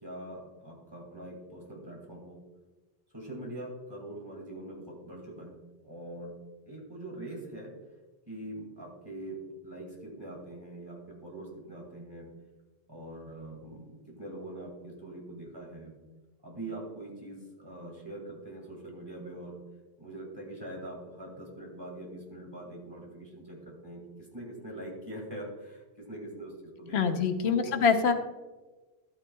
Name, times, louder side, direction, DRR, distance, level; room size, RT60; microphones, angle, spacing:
voice 1, 0.0-2.4 3.1-5.6 5.8-6.3 6.7-7.7 8.3-12.3 12.9-15.9 16.4-19.6 20.0-24.0 24.3-27.8, right 1 dB, 20° right, -1 dB, 2.1 m, -43 dB
voice 2, 26.9-28.1, left 6 dB, 80° left, 7 dB, 1.1 m, -25 dB
12.5 x 8.8 x 2.3 m, 1.2 s
omnidirectional pair, 1.1 m